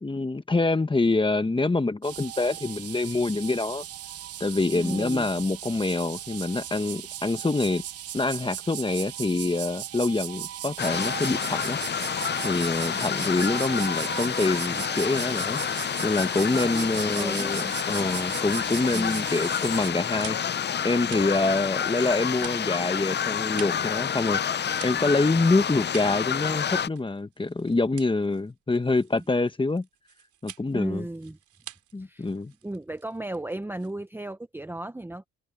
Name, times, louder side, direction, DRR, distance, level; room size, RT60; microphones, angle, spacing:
voice 1, 0.0-3.8 4.4-7.8 8.1-11.8 12.4-15.6 16.0-20.4 20.8-29.8 30.4-31.1 31.9-32.5, left 3 dB, 15° left, 1.4 m, -26 dB
sound 1, 2.0-19.9, right 12 dB, 55° right, 0.7 m, -37 dB
voice 2, 4.7-5.3 12.9-13.2 16.5-17.8 18.9-19.4 30.7-31.4 32.0-32.3 32.6-35.3, right 1 dB, 5° right, 0.9 m, -35 dB
sound 2, 10.8-26.9, left 8 dB, 35° left, 0.6 m, -29 dB
sound 3, 20.0-34.3, right 11 dB, 75° right, 2.9 m, -48 dB
cardioid pair, 90°, 30 cm